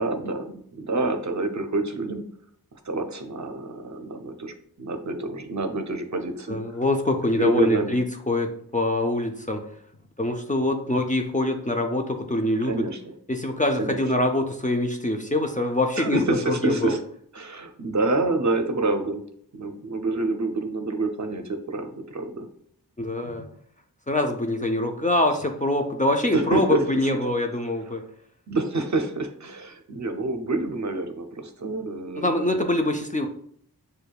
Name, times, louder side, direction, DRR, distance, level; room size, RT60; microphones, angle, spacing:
voice 1, 0.0-2.3 2.7-6.6 7.4-8.0 12.6-13.1 13.8-14.0 16.0-17.0 17.3-19.2 19.5-22.5 26.3-26.8 28.5-32.7, right 2 dB, 50° right, 6 dB, 0.5 m, -27 dB
voice 2, 6.5-9.7 10.2-12.9 13.3-17.0 23.0-23.5 24.1-28.1 32.2-33.3, left 1 dB, 20° left, 3 dB, 0.4 m, -24 dB
6.4 x 2.2 x 2.3 m, 0.63 s
wide cardioid pair, 40°, 38 cm